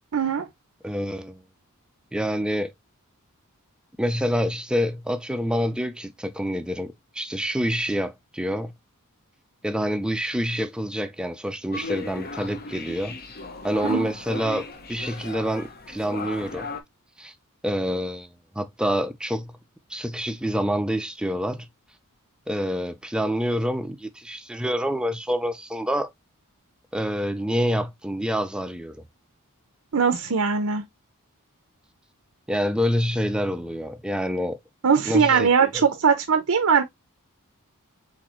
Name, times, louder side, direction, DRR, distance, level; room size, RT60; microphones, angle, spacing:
voice 1, 0.1-0.5 13.8-14.1 29.9-30.8 34.8-36.8, right 6 dB, 70° right, 0.7 m, -20 dB
voice 2, 0.8-1.4 2.1-2.7 4.0-8.7 9.6-13.2 13.6-16.7 17.2-17.3 17.6-19.5 19.9-21.7 22.5-26.1 26.9-29.0 32.5-34.6 35.1-35.5 35.7-35.8, equal, 5° right, 0.5 m, -27 dB
sound 1, 11.7-16.8, left 3 dB, 45° left, 0.9 m, -36 dB
4.2 x 4.2 x 3.0 m
head